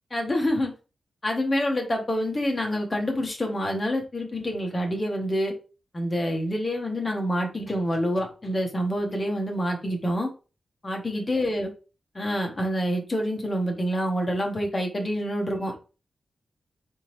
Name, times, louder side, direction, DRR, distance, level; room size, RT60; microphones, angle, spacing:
voice 1, 0.1-0.7 1.2-5.5 5.9-10.3 10.8-11.7 12.1-15.8, equal, 20° left, 1 dB, 1.0 m, -27 dB
3.8 x 3.7 x 3.0 m, 0.33 s
wide cardioid pair, 175°, 0 cm